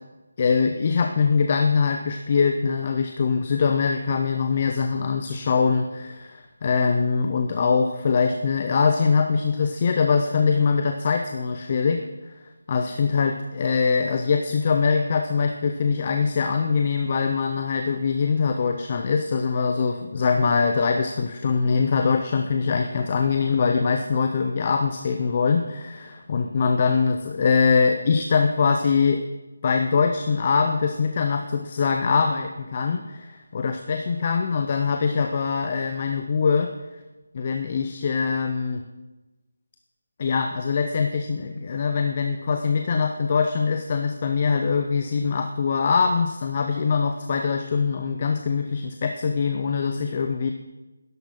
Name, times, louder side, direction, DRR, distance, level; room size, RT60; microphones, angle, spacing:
voice 1, 0.4-12.1 12.7-29.2 29.6-36.7 37.3-38.8 40.2-50.5, left 5 dB, 30° left, 5 dB, 0.6 m, -23 dB
11.5 x 11.0 x 3.8 m, 1.1 s
figure-of-eight pair, 170°, 0 cm